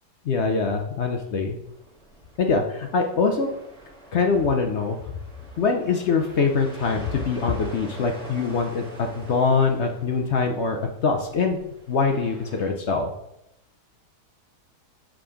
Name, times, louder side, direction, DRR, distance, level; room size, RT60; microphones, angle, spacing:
voice 1, 0.2-1.6 2.4-3.5 4.1-5.0 5.6-11.6 11.9-13.1, left 4 dB, 65° left, 3 dB, 0.7 m, -23 dB
sound 1, 1.6-12.7, right 1 dB, 5° left, 1.5 m, -45 dB
7.2 x 3.8 x 4.9 m, 0.84 s
omnidirectional pair, 1.8 m